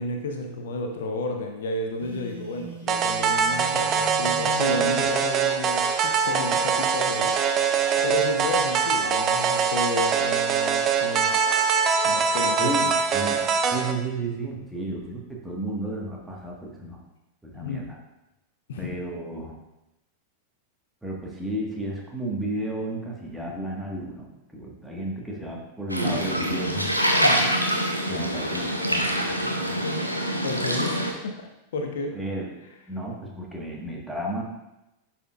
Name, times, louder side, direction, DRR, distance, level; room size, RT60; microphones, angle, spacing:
voice 1, 0.0-7.7 8.0-11.4 12.0-12.7 17.5-17.9 18.7-19.0 27.2-27.5 30.4-32.2, left 2 dB, 60° left, 4 dB, 0.7 m, -32 dB
Telephone, 1.9-5.1, left 1 dB, 70° right, 1.6 m, -39 dB
sound 1, 2.9-13.9, right 6 dB, 30° right, 0.6 m, -23 dB
voice 2, 12.6-17.0 17.4-17.9 18.8-19.5 21.0-26.9 28.1-29.8 32.1-32.5 32.9-34.4, right 1 dB, 5° right, -3 dB, 1.4 m, -33 dB
sound 2, 25.9-31.1, equal, 90° left, 0.8 m, -25 dB
11.0 x 4.4 x 2.4 m, 0.95 s
figure-of-eight pair, 90°, 0 cm